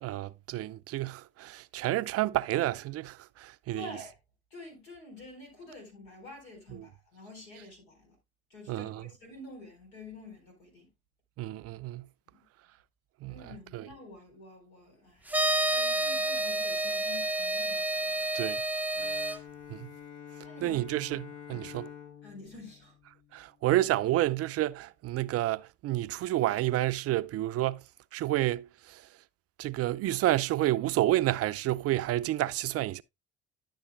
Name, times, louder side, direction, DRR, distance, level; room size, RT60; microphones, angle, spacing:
voice 1, 0.0-3.8 8.7-9.0 11.4-12.1 13.2-13.4 13.7-13.9 18.3-18.6 19.7-19.9 20.6-21.2 21.5-21.9 23.3-27.8 28.1-29.0 29.6-33.0, right 15 dB, 50° right, 0.5 m, -29 dB
voice 2, 3.7-4.2 4.5-8.2 8.5-10.9 12.3-12.4 13.3-15.3 15.6-18.3 20.4-20.8 21.5-21.7 22.2-23.0, left 2 dB, 85° left, 4.2 m, -48 dB
sound 1, 15.3-19.4, right 1 dB, 5° right, 0.5 m, -29 dB
Bowed string instrument, 19.0-23.8, left 9 dB, 55° left, 1.2 m, -48 dB
11.0 x 6.8 x 2.2 m
hypercardioid pair, 65°, 31 cm